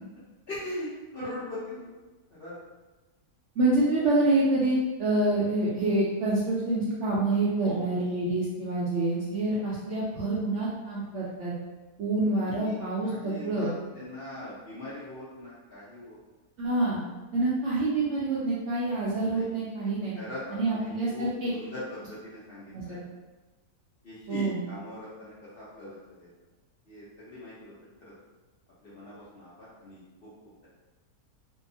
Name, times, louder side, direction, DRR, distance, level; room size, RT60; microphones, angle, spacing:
voice 1, 0.5-2.0 2.3-2.6 7.6-8.1 12.4-12.8 13.0-16.2 19.3-19.4 20.2-23.0 24.0-26.3 26.9-28.1 28.8-30.3, left 1 dB, 60° left, -10 dB, 0.6 m, -41 dB
voice 2, 3.6-11.6 12.0-13.7 16.6-17.0 17.3-20.2 20.5-21.5 22.7-23.0 24.3-24.6, right 2 dB, 70° right, -7 dB, 0.7 m, -27 dB
2.7 x 2.2 x 2.6 m, 1.2 s
omnidirectional pair, 1.7 m